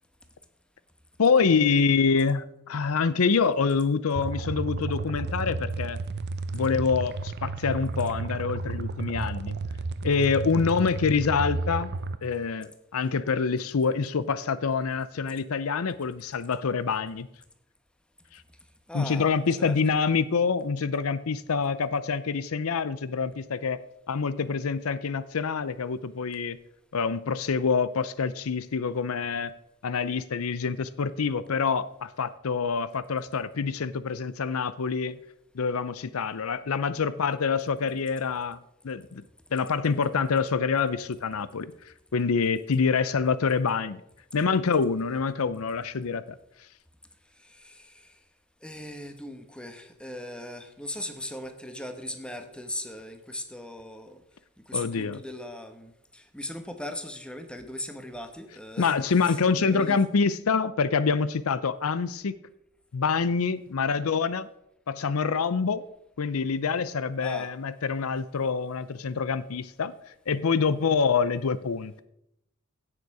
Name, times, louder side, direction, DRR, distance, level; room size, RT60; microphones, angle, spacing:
voice 1, 1.2-6.0 6.5-9.6 10.0-11.9 12.2-17.3 18.3-18.4 18.9-23.8 24.1-26.6 26.9-29.5 29.8-35.2 35.5-38.6 38.8-39.2 39.5-41.7 42.1-44.0 44.3-46.2 54.7-55.2 58.8-62.4 62.9-64.5 64.9-65.8 66.2-69.9 70.3-72.0, left 5 dB, 85° left, 16 dB, 0.6 m, -26 dB
sound 1, 4.2-12.2, right 3 dB, 50° right, 0.6 m, -32 dB
voice 2, 18.9-19.8 47.4-48.2 48.6-54.2 54.7-60.0 67.2-67.5, left 1 dB, 5° left, 7 dB, 1.1 m, -39 dB
16.5 x 6.7 x 4.8 m, 0.78 s
head